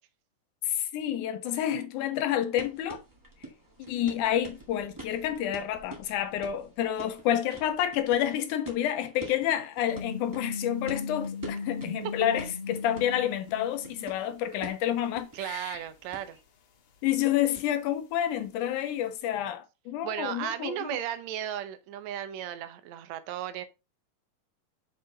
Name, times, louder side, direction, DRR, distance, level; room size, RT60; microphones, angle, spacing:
voice 1, 0.6-3.0 3.9-15.8 17.0-20.8, left 11 dB, 80° left, 2.0 m, -29 dB
sound 1, 2.6-16.4, right 2 dB, 20° right, 0.6 m, -47 dB
sound 2, 9.9-14.2 14.4-14.5 17.1-17.2, left 4 dB, 50° left, 1.9 m, -37 dB
voice 2, 15.3-16.4 20.0-23.7, right 11 dB, 75° right, 1.8 m, -35 dB
6.4 x 5.3 x 3.8 m
omnidirectional pair, 3.8 m